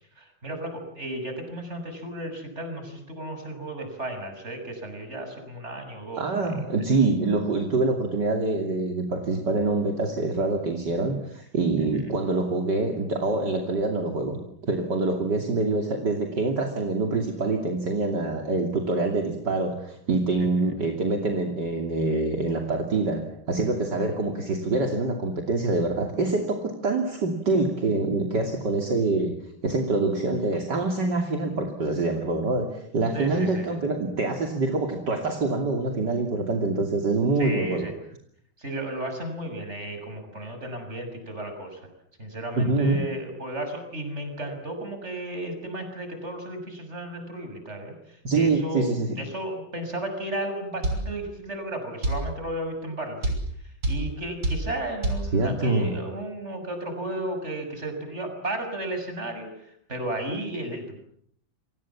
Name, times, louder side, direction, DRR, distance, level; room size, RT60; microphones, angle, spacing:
voice 1, 0.2-6.6 20.4-20.5 33.1-33.8 37.4-37.9 38.6-41.8 42.2-48.9 49.1-53.4 53.9-61.0, right 1 dB, 35° right, 6 dB, 7.0 m, -34 dB
voice 2, 6.2-29.4 29.6-37.9 42.6-43.0 48.2-49.2 55.3-56.0, right 3 dB, 60° right, 3 dB, 3.4 m, -25 dB
sound 1, 50.8-51.0 52.0-52.2 53.2-53.4 53.8-54.0 54.4-54.6 55.0-55.2, right 1 dB, 85° right, 7.2 m, -25 dB
29.5 x 26.0 x 7.4 m, 0.68 s
omnidirectional pair, 2.1 m